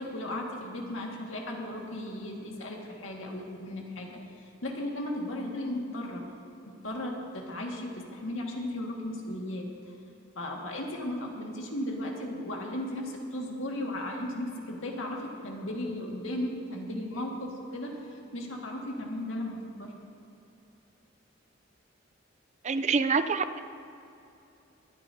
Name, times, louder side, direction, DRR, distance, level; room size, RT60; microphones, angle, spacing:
voice 1, 0.0-6.3 6.7-9.7 10.4-19.9, left 1 dB, 80° left, -1 dB, 1.9 m, -36 dB
voice 2, 22.6-23.6, right 5 dB, 35° right, 11 dB, 0.5 m, -26 dB
23.5 x 10.0 x 2.8 m, 2.8 s
head